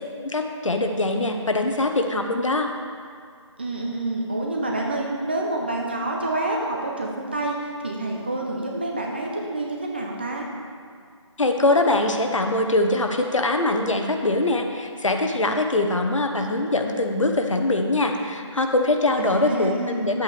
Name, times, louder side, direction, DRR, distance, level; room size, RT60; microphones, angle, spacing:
voice 1, 0.2-2.7 11.4-20.2, left 2 dB, 85° left, 4 dB, 1.1 m, -22 dB
voice 2, 3.6-10.5 19.2-20.2, right 2 dB, 20° right, -1 dB, 0.6 m, -28 dB
10.0 x 8.2 x 3.3 m, 2.2 s
figure-of-eight pair, 170°, 16 cm